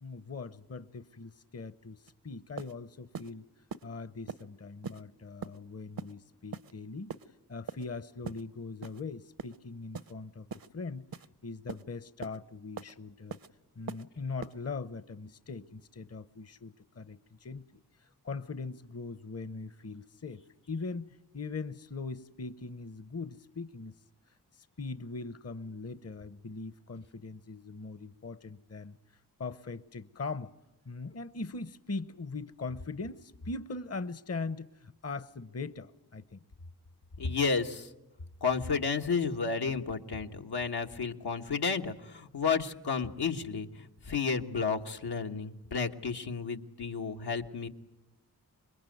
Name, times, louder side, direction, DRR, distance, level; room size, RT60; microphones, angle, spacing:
voice 1, 0.0-3.4 3.8-7.1 7.5-10.5 10.7-11.0 11.4-13.4 13.8-17.6 18.0-23.9 24.5-29.0 29.4-30.5 30.8-36.4, left 3 dB, 40° left, 0.9 m, -41 dB
sound 1, 2.1-2.2 2.6-2.7 3.1-3.3 3.7-3.8 4.3-4.4 4.8-5.0 5.4-5.6 6.0-6.1 6.5-6.7 7.1-7.2 7.7-7.8 8.2-8.4 8.8-9.0 9.4-9.6 9.9-10.1 10.5-10.7 11.1-11.3 11.7-11.8 12.2-12.4 12.8-12.9 13.3-13.5 13.9-14.0 14.4-14.5, right 5 dB, 60° right, 0.9 m, -41 dB
voice 2, 37.2-37.9 38.4-47.7, left 5 dB, 80° left, 1.5 m, -32 dB
26.0 x 21.5 x 9.3 m
cardioid pair, 40°, 39 cm